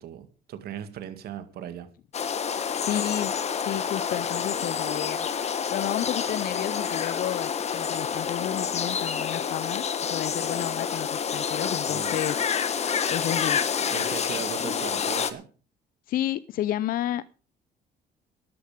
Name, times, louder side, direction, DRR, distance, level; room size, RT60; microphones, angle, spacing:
voice 1, 0.0-1.9 11.9-12.2 13.9-15.5, right 9 dB, 70° right, 2.1 m, -38 dB
sound 1, 2.1-15.3, left 7 dB, 40° left, 1.4 m, -28 dB
voice 2, 2.8-3.3 3.6-5.3 5.7-9.8 10.1-12.4 13.1-13.6 16.1-17.2, left 12 dB, 60° left, 0.5 m, -31 dB
13.0 x 11.5 x 5.1 m
cardioid pair, 110°, 17 cm